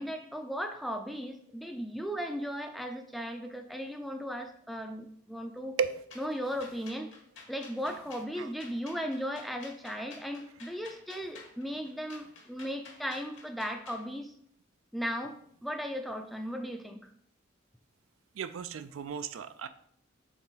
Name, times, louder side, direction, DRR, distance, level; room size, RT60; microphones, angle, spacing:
voice 1, 0.0-5.8 6.2-7.1 7.5-14.3 14.9-17.1, equal, ahead, 5 dB, 0.4 m, -36 dB
sound 1, 6.1-14.0, left 4 dB, 65° left, 1.5 m, -51 dB
voice 2, 18.4-19.7, right 6 dB, 85° right, 11 dB, 0.4 m, -34 dB
6.2 x 3.8 x 4.0 m, 0.66 s
head